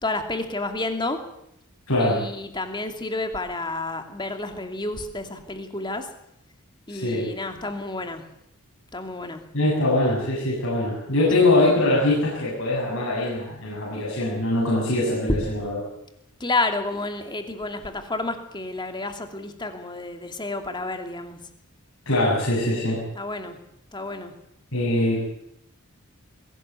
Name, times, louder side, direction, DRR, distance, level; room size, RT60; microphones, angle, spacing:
voice 1, 0.0-1.2 2.0-6.1 6.9-8.2 8.9-9.4 11.3-11.4 16.4-21.4 23.2-23.6 23.9-24.3, left 2 dB, 20° left, 6 dB, 2.7 m, -30 dB
voice 2, 1.9-2.2 6.9-7.3 9.5-15.8 22.1-23.0 24.7-25.2, left 2 dB, 65° left, -5 dB, 7.5 m, -22 dB
22.0 x 17.5 x 8.4 m, 0.78 s
head